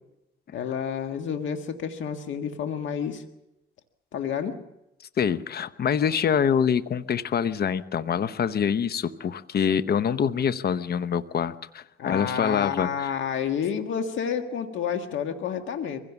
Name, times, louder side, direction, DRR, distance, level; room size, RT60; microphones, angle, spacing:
voice 1, 0.5-3.2 4.1-4.6 12.0-16.0, left 7 dB, 75° left, 6 dB, 1.7 m, -30 dB
voice 2, 5.2-12.9, left 7 dB, 55° left, 13 dB, 0.9 m, -25 dB
23.0 x 16.5 x 7.1 m, 0.89 s
cardioid pair, 90°, 20 cm